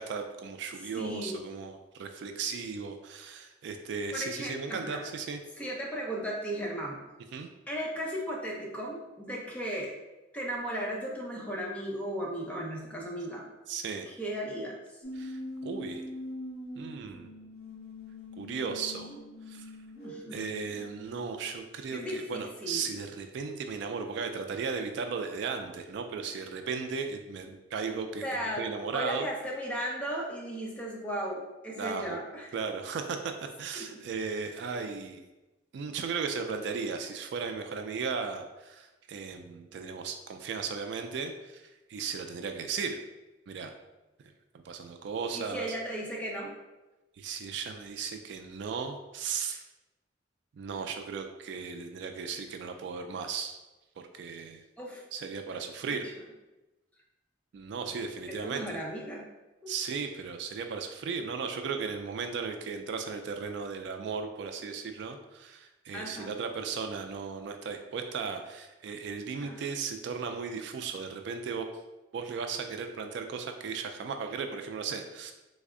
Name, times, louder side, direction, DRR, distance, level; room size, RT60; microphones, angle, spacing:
voice 1, 0.0-5.4 7.3-7.5 13.7-14.1 15.2-16.0 16.8-17.3 18.4-19.1 19.5-19.7 20.3-28.2 28.6-29.3 31.8-32.2 32.5-33.2 33.6-35.2 35.7-41.6 41.9-43.0 43.5-43.7 44.7-45.7 47.2-49.6 50.6-53.6 54.1-54.6 55.1-56.1 57.5-58.8 59.7-71.7 72.1-75.3, right 5 dB, 65° right, 6 dB, 0.3 m, -36 dB
voice 2, 0.9-1.4 4.1-5.0 5.6-7.0 7.7-9.9 10.3-13.5 14.0-14.8 20.0-20.4 21.9-23.0 28.2-28.7 28.9-32.6 33.8-34.0 45.3-46.5 54.8-55.0 55.5-56.2 58.3-59.2 59.6-59.7 65.9-66.4 69.4-69.8, equal, 5° left, -3 dB, 0.6 m, -36 dB
sound 1, 15.0-21.7, left 1 dB, 55° left, 1.1 m, -43 dB
3.4 x 2.1 x 3.6 m, 1.1 s
head